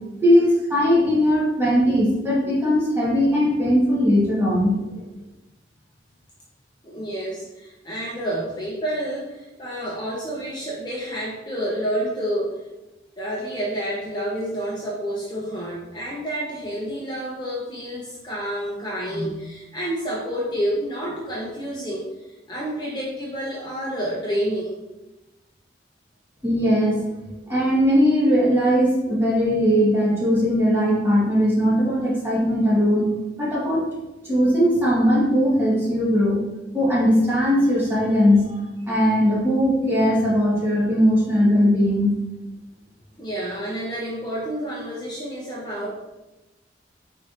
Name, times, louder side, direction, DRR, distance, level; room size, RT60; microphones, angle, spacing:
voice 1, 0.2-5.0 26.4-27.0 27.5-33.9 34.2-36.4 36.7-42.2, equal, 10° right, -7 dB, 1.3 m, -19 dB
voice 2, 6.8-12.6 13.2-24.7 43.2-45.9, equal, 20° left, -5 dB, 0.6 m, -29 dB
4.6 x 4.2 x 2.5 m, 1.0 s
head